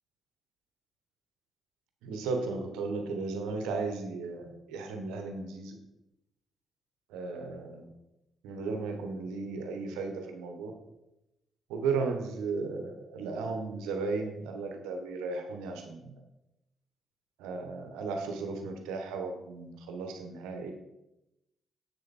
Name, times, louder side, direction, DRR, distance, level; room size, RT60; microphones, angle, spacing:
voice 1, 2.0-5.7 7.1-7.9 8.4-10.7 11.7-16.1 17.4-20.7, right 4 dB, 85° right, 4 dB, 1.3 m, -35 dB
8.0 x 6.7 x 4.3 m, 0.91 s
hypercardioid pair, 50°, 0 cm